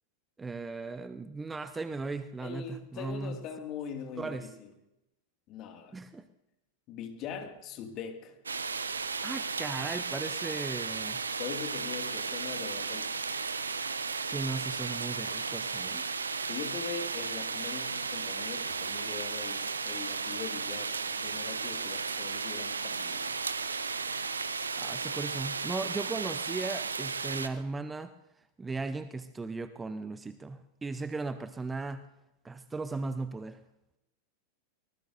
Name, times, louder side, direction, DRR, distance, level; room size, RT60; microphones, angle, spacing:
voice 1, 0.4-3.4 4.2-4.5 5.9-6.3 9.2-11.2 14.3-16.0 24.7-28.1 28.6-32.0 32.4-33.6, right 3 dB, 10° right, 13 dB, 0.6 m, -37 dB
voice 2, 2.4-4.7 5.5-6.0 6.9-8.4 11.4-13.2 16.5-23.3, left 7 dB, 35° left, 5 dB, 2.1 m, -42 dB
sound 1, 8.5-27.5, right 4 dB, 75° right, 0.8 m, -34 dB
24.0 x 19.5 x 2.6 m, 0.91 s
figure-of-eight pair, 90°, 0 cm